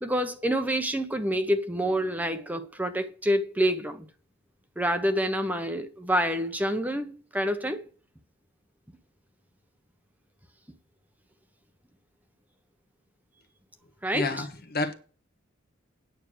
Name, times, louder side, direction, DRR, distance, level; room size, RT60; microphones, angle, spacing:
voice 1, 0.0-4.1 4.8-7.8 14.0-14.5, equal, 10° right, 0.9 m, -27 dB
voice 2, 14.1-14.9, left 3 dB, 50° left, 1.3 m, -29 dB
9.3 x 6.3 x 7.6 m
head